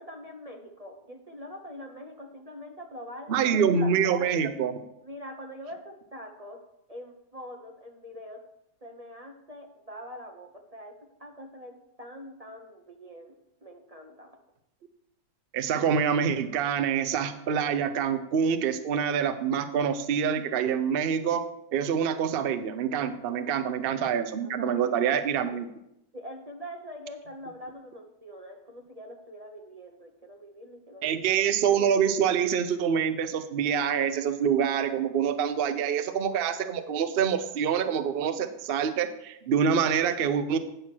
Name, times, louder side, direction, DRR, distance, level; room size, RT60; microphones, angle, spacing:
voice 1, 0.0-4.1 5.0-6.6 6.9-8.4 8.8-10.9 11.2-13.3 13.6-14.4 23.3-23.4 24.4-25.1 26.1-31.3, equal, 35° right, 2 dB, 0.6 m, -44 dB
voice 2, 3.3-4.8 15.5-21.4 21.7-25.7 31.0-40.6, right 7 dB, 85° right, 10 dB, 0.5 m, -26 dB
9.4 x 5.9 x 6.1 m, 0.82 s
omnidirectional pair, 2.0 m